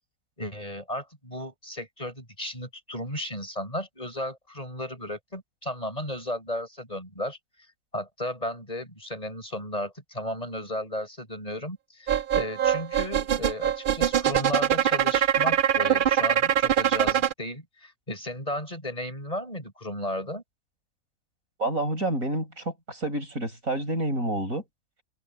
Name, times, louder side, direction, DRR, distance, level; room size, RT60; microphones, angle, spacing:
voice 1, 0.4-7.4 7.9-20.4, left 1 dB, 25° left, 6.7 m, -34 dB
sound 1, 12.1-17.3, right 9 dB, 85° right, 0.4 m, -23 dB
voice 2, 21.6-24.6, right 1 dB, 60° right, 7.3 m, -29 dB
omnidirectional pair, 1.6 m